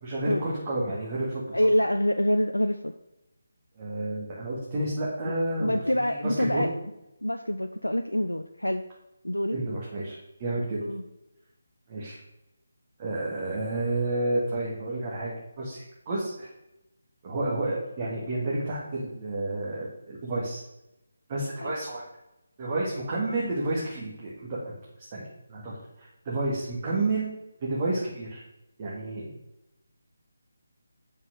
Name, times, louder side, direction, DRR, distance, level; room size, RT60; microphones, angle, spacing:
voice 1, 0.0-1.4 3.8-6.7 9.5-10.8 11.9-12.2 13.0-15.3 15.6-16.5 17.2-20.6 21.3-22.0 22.6-24.7 25.1-25.2 25.5-27.3 27.6-28.4 28.8-29.3, right 2 dB, 30° right, -6 dB, 1.9 m, -30 dB
voice 2, 1.5-2.9 5.2-5.3 5.6-6.8 7.2-8.8 9.2-9.5 10.8-11.0 21.6-21.7, equal, 85° left, 7 dB, 0.5 m, -26 dB
7.7 x 5.5 x 6.4 m, 0.91 s
figure-of-eight pair, 150°, 0 cm